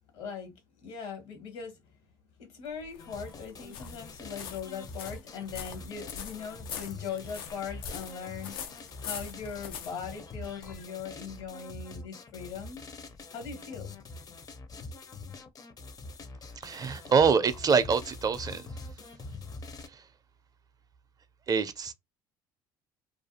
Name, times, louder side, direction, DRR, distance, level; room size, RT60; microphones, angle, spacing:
voice 1, 0.1-1.7 2.4-12.8 13.3-13.9, left 6 dB, 70° left, 1.3 m, -40 dB
sound 1, 2.7-10.8, left 8 dB, 90° left, 0.5 m, -43 dB
sound 2, 3.0-19.9, left 3 dB, 30° left, 0.5 m, -45 dB
voice 2, 16.6-18.6 21.5-21.9, right 5 dB, 30° right, 0.4 m, -25 dB
2.4 x 2.3 x 2.6 m
hypercardioid pair, 75°, 12 cm